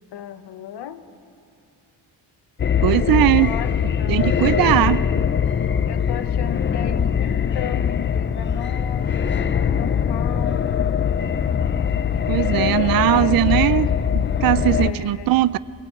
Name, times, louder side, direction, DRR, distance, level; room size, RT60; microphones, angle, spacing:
voice 1, 0.1-1.0 3.0-4.9 5.9-10.7 12.1-13.4 14.8-15.5, left 9 dB, 80° left, 1.2 m, -35 dB
sound 1, 2.6-14.9, left 7 dB, 30° left, 0.5 m, -22 dB
voice 2, 2.8-3.5 4.1-5.0 12.3-13.9 14.1-15.6, right 14 dB, 60° right, 0.5 m, -19 dB
21.0 x 19.0 x 8.4 m
wide cardioid pair, 170°, 40 cm